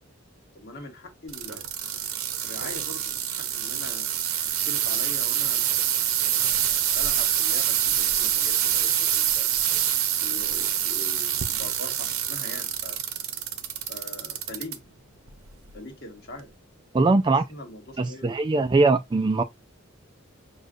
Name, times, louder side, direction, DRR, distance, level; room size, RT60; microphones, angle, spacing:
voice 1, 0.5-1.7 2.4-4.1 4.6-9.5 10.2-13.0 13.9-14.8 15.7-16.5 17.3-18.4, left 1 dB, 50° left, 1.3 m, -42 dB
sound 1, 1.3-14.8 15.3-15.7 16.4-16.5, right 10 dB, 85° right, 0.6 m, -26 dB
voice 2, 16.9-17.4 18.0-19.4, right 3 dB, 20° right, 0.3 m, -21 dB
6.4 x 2.3 x 2.6 m
head